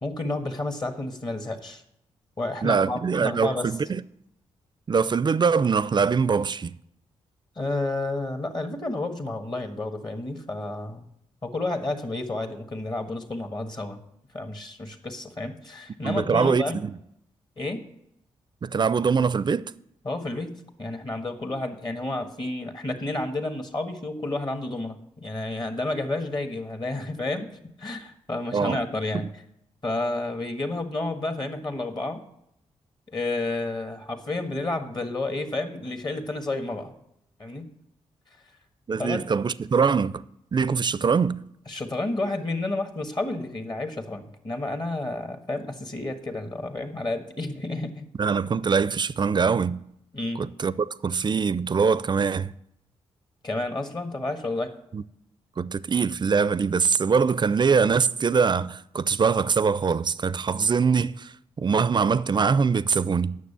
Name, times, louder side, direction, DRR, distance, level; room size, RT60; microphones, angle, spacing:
voice 1, 0.0-1.8 2.4-3.7 7.5-11.1 11.4-14.0 14.3-16.8 17.6-17.9 20.0-27.5 27.8-29.3 29.8-32.2 33.1-36.9 37.4-37.6 39.0-39.2 41.7-48.0 50.1-50.5 53.4-54.7, left 2 dB, 35° left, 1.6 m, -30 dB
voice 2, 2.6-4.0 4.9-6.7 16.0-17.0 18.6-19.7 28.5-28.8 38.9-40.2 40.5-41.4 48.2-49.8 50.4-52.5 54.9-55.0 55.6-63.4, right 5 dB, 40° right, 0.5 m, -23 dB
9.3 x 6.7 x 6.9 m
supercardioid pair, 45°, 12 cm